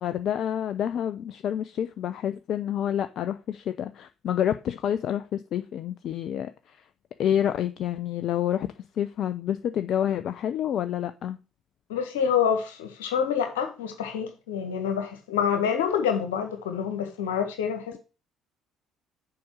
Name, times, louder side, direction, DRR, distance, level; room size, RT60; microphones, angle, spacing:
voice 1, 0.0-6.8 7.2-8.7 9.0-11.4, left 10 dB, 50° left, 0.5 m, -28 dB
voice 2, 11.9-18.0, left 7 dB, 70° left, 1.7 m, -27 dB
7.0 x 4.9 x 6.3 m
figure-of-eight pair, 50°, 0 cm